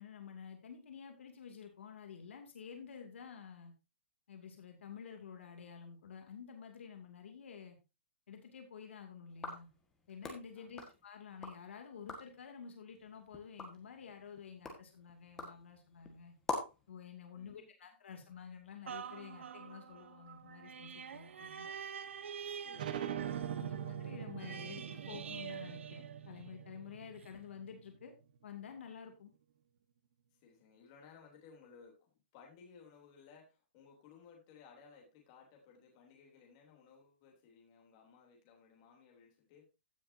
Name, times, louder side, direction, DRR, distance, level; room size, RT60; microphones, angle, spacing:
voice 1, 0.0-3.7 4.3-7.8 8.3-9.7 10.1-16.3 16.9-21.7 23.5-28.1 28.4-29.3, left 7 dB, 75° left, 4 dB, 2.5 m, -50 dB
sound 1, 9.3-11.6 11.9-12.4 12.9-16.9, left 3 dB, 10° left, 1.6 m, -46 dB
voice 2, 10.5-10.9 17.3-17.7 22.5-23.9 30.4-39.7, left 5 dB, 25° left, 0 dB, 3.1 m, -60 dB
sound 2, 18.9-26.7 27.2-27.3, right 7 dB, 90° right, 1.0 m, -47 dB
sound 3, 22.7-28.0, right 9 dB, 45° right, 1.1 m, -42 dB
15.5 x 6.6 x 2.7 m, 0.27 s
hypercardioid pair, 175°, 7 cm